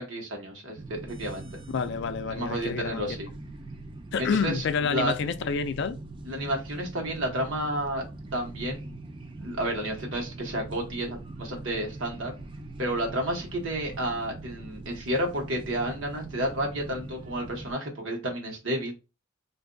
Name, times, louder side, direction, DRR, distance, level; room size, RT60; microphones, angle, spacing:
voice 1, 0.0-1.6 2.3-3.3 4.2-4.6 4.9-5.1 6.2-8.0 8.3-8.9 9.4-12.3 12.8-18.9, right 1 dB, 80° right, 1.2 m, -31 dB
sound 1, 0.8-17.7, right 2 dB, 25° right, 0.4 m, -42 dB
voice 2, 1.7-3.2 4.1-6.0, left 5 dB, 60° left, 0.4 m, -28 dB
2.6 x 2.3 x 3.8 m
head